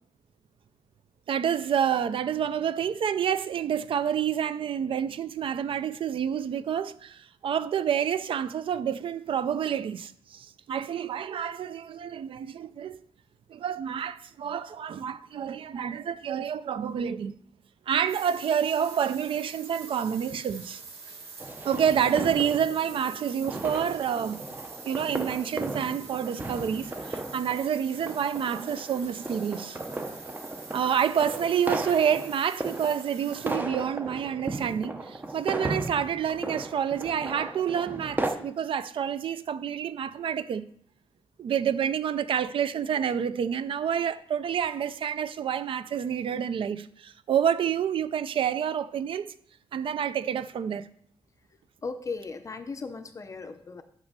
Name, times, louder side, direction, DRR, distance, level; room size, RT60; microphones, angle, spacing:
voice 1, 1.3-13.0 13.5-17.4 17.9-20.8 21.6-24.4 24.8-29.8 30.7-40.7 41.4-49.3 49.7-50.9, right 8 dB, 65° right, 0.4 m, -28 dB
sound 1, 18.1-33.5, right 4 dB, 90° right, 1.6 m, -46 dB
sound 2, 21.4-38.3, right 2 dB, 20° right, 0.7 m, -36 dB
voice 2, 51.8-53.8, left 4 dB, 35° left, 0.5 m, -37 dB
6.0 x 5.4 x 6.6 m
wide cardioid pair, 140°, 10 cm